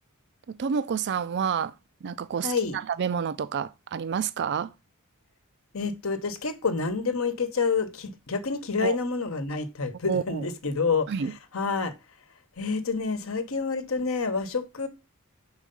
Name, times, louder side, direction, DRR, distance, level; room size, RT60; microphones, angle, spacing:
voice 1, 0.6-1.7 2.0-4.7 8.8-9.0 10.1-10.4 11.1-11.3, right 7 dB, 50° right, 0.4 m, -29 dB
voice 2, 2.4-2.8 5.7-11.1 11.5-11.9 12.6-14.9, left 4 dB, 65° left, 1.0 m, -28 dB
5.5 x 4.8 x 5.2 m
head